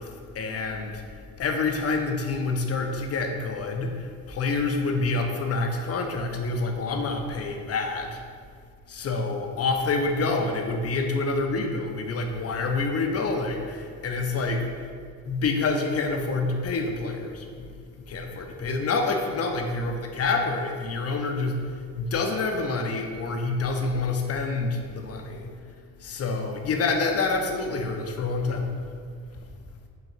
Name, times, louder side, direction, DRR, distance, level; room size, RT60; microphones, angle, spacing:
voice 1, 0.0-8.2 8.9-14.9 15.3-25.6 26.0-28.7, left 3 dB, 45° left, 4 dB, 0.5 m, -27 dB
3.7 x 2.2 x 4.3 m, 2.1 s
supercardioid pair, 70°, 36 cm